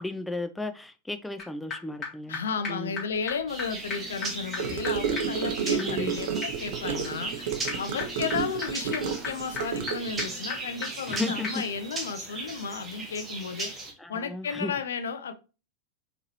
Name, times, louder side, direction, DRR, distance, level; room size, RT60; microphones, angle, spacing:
voice 1, 0.0-2.4 2.7-3.0 5.8-6.2 11.1-11.5 14.0-14.7, left 2 dB, 5° left, 0.3 m, -34 dB
sound 1, 1.4-1.5 1.7-1.8 2.0-2.1 2.3-2.4 2.6-2.7 3.0-3.1 3.3-3.4 3.6-3.7 3.9-11.2 11.4-11.5, left 4 dB, 20° left, 2.2 m, -38 dB
voice 2, 2.3-7.5 7.8-13.7 14.1-15.3, left 5 dB, 65° left, 0.4 m, -33 dB
sound 2, 3.5-13.9, right 2 dB, 20° right, 1.0 m, -37 dB
Gurgling / Car passing by / Sink (filling or washing), 4.6-10.3, right 7 dB, 55° right, 0.6 m, -31 dB
4.5 x 3.0 x 2.8 m
figure-of-eight pair, 90°, 0 cm